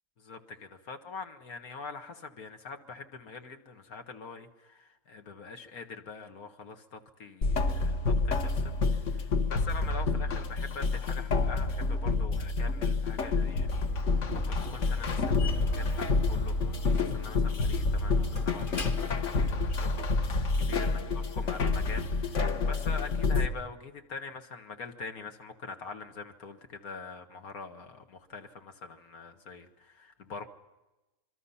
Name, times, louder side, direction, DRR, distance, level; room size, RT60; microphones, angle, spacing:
voice 1, 0.2-21.0 21.4-30.5, left 4 dB, 85° left, 2.1 m, -44 dB
sound 1, 7.4-23.5, left 3 dB, 60° left, 1.5 m, -28 dB
Slam, 13.6-19.8, left 2 dB, 35° left, 1.6 m, -42 dB
26.0 x 23.5 x 5.7 m
omnidirectional pair, 1.5 m